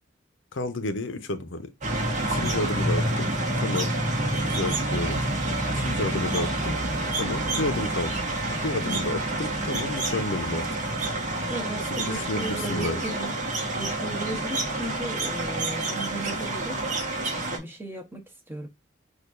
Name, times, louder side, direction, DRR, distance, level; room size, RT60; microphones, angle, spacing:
voice 1, 0.5-1.7 2.2-3.3 3.6-4.0 4.3-5.3 5.7-6.7 7.1-8.2 8.5-10.7 11.9-13.0, left 2 dB, 80° left, 0.8 m, -31 dB
sound 1, 1.8-17.6, right 2 dB, 40° right, 1.3 m, -28 dB
voice 2, 8.8-9.1 11.5-13.3 13.7-16.9 17.4-18.7, right 1 dB, 10° right, 1.0 m, -36 dB
6.4 x 2.5 x 2.5 m
head